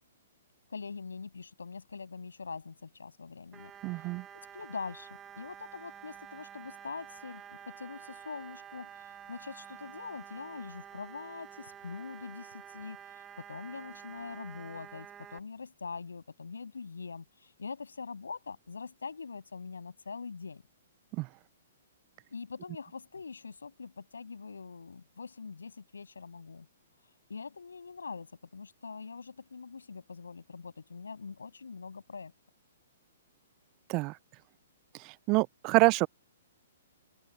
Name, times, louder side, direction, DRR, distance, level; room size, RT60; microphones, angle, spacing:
voice 1, 0.7-3.7 4.5-5.1 5.4-7.4 7.7-13.2 13.5-20.6 22.3-26.7 27.3-32.3, left 5 dB, 85° left, 6.9 m, -43 dB
sound 1, 3.5-15.4, right 9 dB, 20° right, 2.3 m, -49 dB
voice 2, 3.8-4.2 21.2-21.3 33.9-34.1 35.3-36.1, right 26 dB, 35° right, 0.4 m, -26 dB
open air
hypercardioid pair, 125°, 0 cm